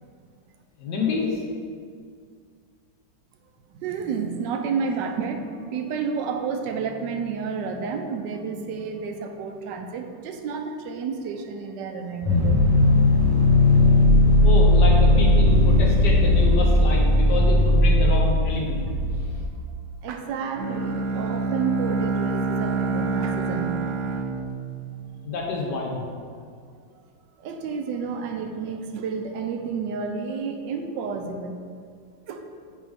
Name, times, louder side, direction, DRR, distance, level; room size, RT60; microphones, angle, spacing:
voice 1, 0.8-1.4 14.4-18.8 25.2-26.0, left 3 dB, 70° left, -1 dB, 1.5 m, -27 dB
voice 2, 3.7-12.6 20.0-23.8 27.4-31.6 32.3-32.5, right 5 dB, 80° right, 5 dB, 1.2 m, -30 dB
sound 1, 12.2-19.4, left 1 dB, 25° left, 0.5 m, -17 dB
Bowed string instrument, 20.5-25.5, right 3 dB, 65° right, 0.8 m, -27 dB
9.2 x 3.6 x 3.5 m, 2.1 s
omnidirectional pair, 1.9 m